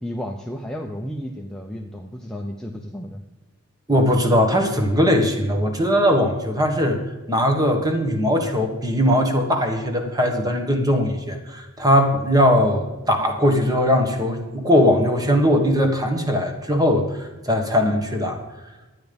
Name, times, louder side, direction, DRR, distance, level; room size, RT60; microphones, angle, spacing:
voice 1, 0.0-3.2, equal, 5° left, 1 dB, 0.6 m, -32 dB
voice 2, 3.9-18.4, equal, 15° right, 4 dB, 1.5 m, -20 dB
11.5 x 9.2 x 5.2 m, 1.2 s
head